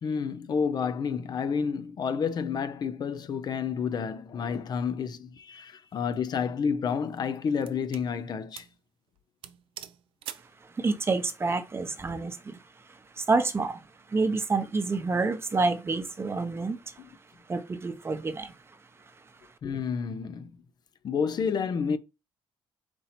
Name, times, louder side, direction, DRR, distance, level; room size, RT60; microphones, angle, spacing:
voice 1, 0.0-8.7 19.6-20.5 21.0-22.0, left 6 dB, 50° left, 0.5 m, -30 dB
sound 1, 5.8-6.2 6.9-8.1 8.5-8.8 9.1-9.2 9.4-10.6, right 11 dB, 80° right, 0.5 m, -44 dB
voice 2, 10.6-17.0 17.5-18.6 19.1-19.5, right 3 dB, 25° right, 0.7 m, -29 dB
4.4 x 2.8 x 4.1 m
cardioid pair, 95°, 9 cm